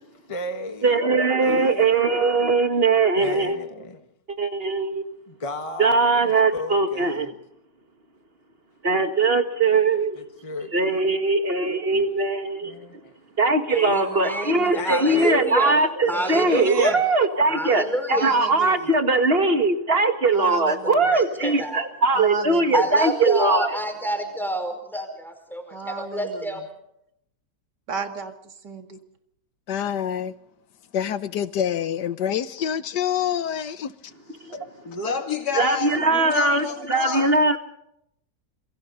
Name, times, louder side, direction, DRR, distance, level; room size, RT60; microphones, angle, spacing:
voice 1, 0.3-1.0 1.4-1.9 3.1-4.1 5.3-7.3 9.9-10.7 11.9-12.1 12.7-13.1 14.7-15.5, left 2 dB, 20° left, 1.6 m, -35 dB
voice 2, 0.8-3.6 4.3-5.0 5.8-7.3 8.8-10.2 10.7-12.8 13.4-17.8 18.1-23.8 34.4-34.7 35.5-37.6, right 3 dB, 35° right, 2.0 m, -21 dB
voice 3, 13.7-15.7 16.1-17.0 17.5-18.3 20.8-21.8 22.7-26.6, equal, ahead, 4.9 m, -28 dB
voice 4, 16.1-17.0 18.2-18.9 20.3-21.1 22.1-22.8 25.7-26.5 27.9-29.0, right 5 dB, 80° right, 2.6 m, -33 dB
voice 5, 29.7-30.3 30.9-34.1, left 9 dB, 80° left, 1.6 m, -26 dB
voice 6, 34.8-37.2, left 5 dB, 65° left, 3.0 m, -29 dB
27.5 x 23.5 x 4.0 m
omnidirectional pair, 1.8 m